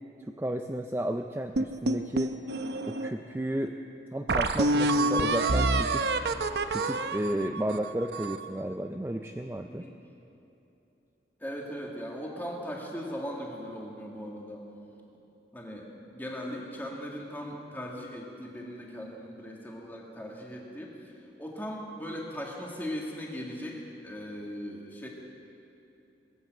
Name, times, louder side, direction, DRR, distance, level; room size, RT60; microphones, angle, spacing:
voice 1, 0.4-2.4 2.9-3.7 4.1-6.1 6.7-9.9, right 1 dB, 15° right, 5 dB, 0.4 m, -33 dB
sound 1, 1.6-3.1 3.7-3.8 4.3-8.5, right 2 dB, 70° right, 0.7 m, -27 dB
voice 2, 9.7-10.0 11.4-14.7 15.5-25.1, equal, 10° left, -1 dB, 1.9 m, -39 dB
20.5 x 8.9 x 7.7 m, 2.9 s
head